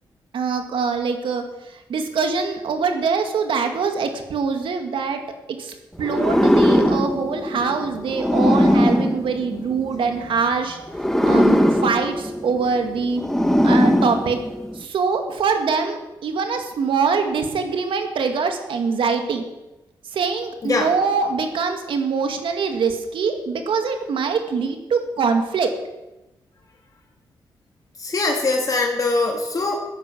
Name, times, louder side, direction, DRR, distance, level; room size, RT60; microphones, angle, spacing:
voice 1, 0.3-5.2 5.5-10.8 11.2-13.2 13.6-14.4 14.7-19.4 20.0-25.7, right 5 dB, 80° right, 5 dB, 2.2 m, -23 dB
sound 1, 6.0-10.2 10.9-14.8, equal, 5° left, 1.5 m, -20 dB
voice 2, 28.0-29.8, left 3 dB, 45° left, 1 dB, 2.4 m, -22 dB
12.5 x 10.5 x 7.6 m, 1.0 s
cardioid pair, 80°, 9 cm